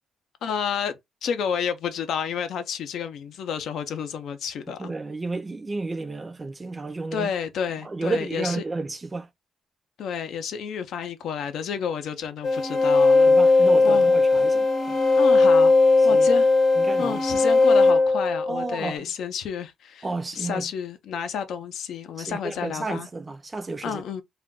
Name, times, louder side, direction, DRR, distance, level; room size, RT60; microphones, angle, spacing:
voice 1, 0.4-4.9 7.1-8.6 10.0-14.1 15.2-16.5 17.0-20.1 20.3-23.1 23.8-24.2, left 7 dB, 70° left, 0.6 m, -30 dB
voice 2, 4.8-7.3 7.8-9.3 13.3-14.9 16.1-16.3 16.8-17.2 18.5-19.0 20.0-20.7 22.2-24.0, right 3 dB, 25° right, 0.5 m, -31 dB
sound 1, 12.4-18.9, left 3 dB, 45° left, 0.9 m, -18 dB
2.4 x 2.2 x 3.6 m
cardioid pair, 105°, 0 cm